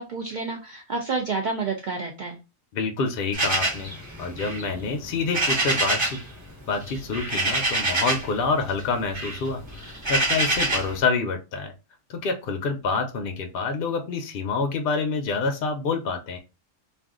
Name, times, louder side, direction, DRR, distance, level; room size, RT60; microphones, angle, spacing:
voice 1, 0.0-2.4, right 4 dB, 70° right, 2 dB, 0.4 m, -29 dB
voice 2, 2.7-3.9 4.2-6.2 6.7-11.7 12.1-16.4, left 4 dB, 65° left, 5 dB, 0.6 m, -27 dB
sound 1, 3.3-6.3 6.5-8.4 8.7-11.0, right 2 dB, 25° right, 1.0 m, -26 dB
2.5 x 2.4 x 3.5 m, 0.29 s
omnidirectional pair, 1.4 m